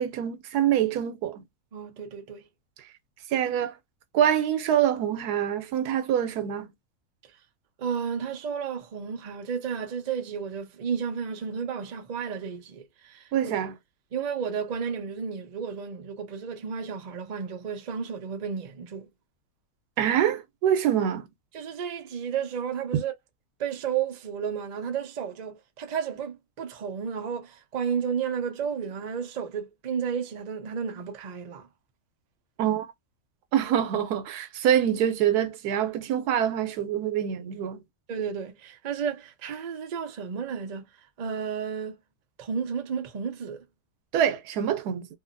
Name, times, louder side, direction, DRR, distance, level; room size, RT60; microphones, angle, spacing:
voice 1, 0.0-1.4 3.3-3.8 4.1-6.7 13.3-13.7 20.0-21.3 32.6-32.9 33.5-37.8 44.1-45.1, right 10 dB, 90° right, 1.2 m, -25 dB
voice 2, 1.7-2.5 7.8-13.5 14.1-19.1 21.5-23.1 23.6-31.7 38.1-40.9 41.2-42.0 42.4-43.6, right 7 dB, 70° right, 0.4 m, -32 dB
2.8 x 2.6 x 2.5 m
omnidirectional pair, 1.6 m